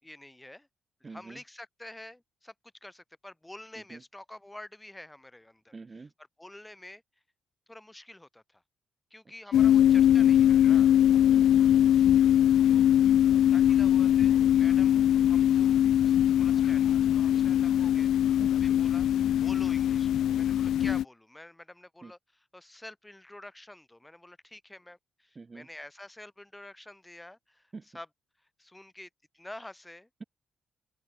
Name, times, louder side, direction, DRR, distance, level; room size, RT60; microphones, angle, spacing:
voice 1, 0.0-0.7 1.0-2.5 2.8-7.0 7.7-8.6 9.1-10.9 12.7-12.9 13.5-15.8 16.4-18.1 18.6-19.1 19.4-28.1 28.6-30.1, left 1 dB, 10° left, 5.3 m, -48 dB
voice 2, 1.0-1.4 3.9-4.0 5.7-6.1 9.5-9.7 11.3-11.9 14.9-15.3 17.7-17.9 18.4-18.6 20.8-20.9 22.0-22.1 25.3-25.7 27.7-27.8, right 4 dB, 30° right, 6.4 m, -45 dB
sound 1, 9.5-21.0, left 11 dB, 80° left, 0.6 m, -22 dB
cardioid pair, 85°, 0 cm